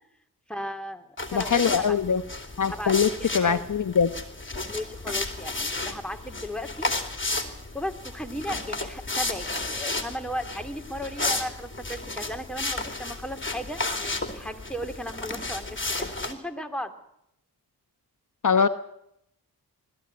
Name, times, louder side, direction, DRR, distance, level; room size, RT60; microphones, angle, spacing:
voice 1, 0.5-2.0 2.6-2.9 3.2-3.6 4.6-7.2 7.7-16.9, equal, ahead, 4 dB, 2.8 m, -36 dB
sound 1, 1.2-16.3, left 2 dB, 30° left, 3.0 m, -33 dB
voice 2, 1.3-2.2 2.6-3.1 3.3-4.1 18.4-18.7, left 6 dB, 50° left, 10 dB, 1.0 m, -22 dB
20.5 x 14.0 x 9.6 m, 0.78 s
cardioid pair, 45°, 39 cm